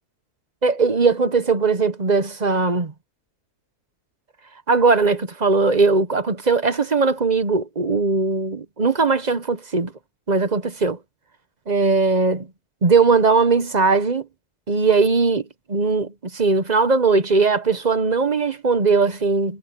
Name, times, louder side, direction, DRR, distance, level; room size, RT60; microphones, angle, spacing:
voice 1, 0.6-2.9 4.7-9.9 10.3-11.0 11.7-12.5 12.8-14.3 14.7-19.6, right 4 dB, 30° right, 1.0 m, -19 dB
omnidirectional pair, 1.7 m